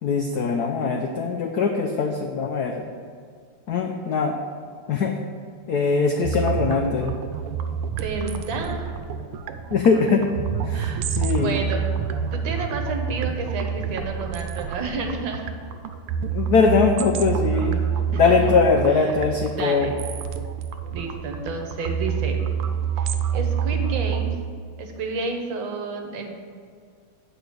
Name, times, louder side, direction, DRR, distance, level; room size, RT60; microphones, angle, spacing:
voice 1, 0.0-2.8 3.7-4.4 4.9-5.1 5.7-7.1 9.7-10.3 10.7-11.6 16.3-17.8 18.1-19.9, left 4 dB, 85° left, 3 dB, 0.8 m, -21 dB
sound 1, 6.2-24.4, right 7 dB, 85° right, 1.5 m, -28 dB
voice 2, 7.9-8.9 10.7-11.1 11.4-11.9 12.3-15.5 18.1-18.6 18.9-19.2 19.5-19.9 20.9-22.4 23.0-24.3 24.8-26.3, right 3 dB, 65° right, 3 dB, 1.6 m, -31 dB
8.7 x 4.9 x 6.3 m, 2.2 s
omnidirectional pair, 2.4 m